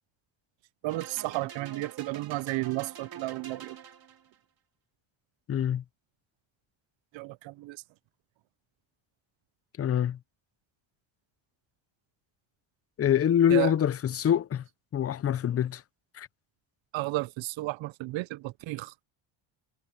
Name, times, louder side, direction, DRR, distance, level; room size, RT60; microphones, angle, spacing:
voice 1, 0.8-3.8 7.1-7.8 13.5-13.7 16.9-18.9, right 20 dB, 75° right, 0.7 m, -33 dB
sound 1, 0.9-4.4, right 8 dB, 50° right, 2.4 m, -46 dB
voice 2, 5.5-5.8 9.8-10.2 13.0-14.6 14.9-15.8 16.1-16.3, left 9 dB, 30° left, 0.5 m, -25 dB
cardioid pair, 110°, 47 cm